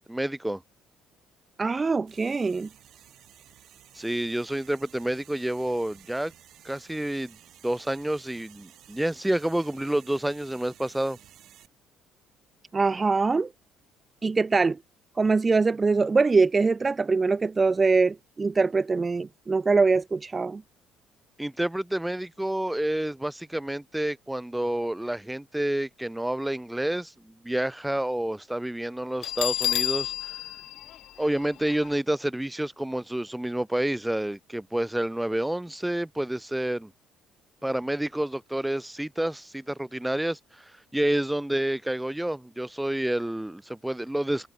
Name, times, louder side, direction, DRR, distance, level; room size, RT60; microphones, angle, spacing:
voice 1, 0.1-0.6 3.9-6.3 6.6-7.4 7.6-11.2 21.4-30.1 31.2-36.9 37.6-40.6 40.9-44.5, right 1 dB, 5° right, 1.1 m, -29 dB
voice 2, 1.6-2.7 12.7-13.5 14.2-14.8 15.2-20.6, right 4 dB, 30° right, 0.6 m, -23 dB
sound 1, 2.1-11.7, right 12 dB, 65° right, 6.7 m, -54 dB
Bell, 29.2-31.9, left 12 dB, 65° left, 2.0 m, -30 dB
supercardioid pair, 65°, 0 cm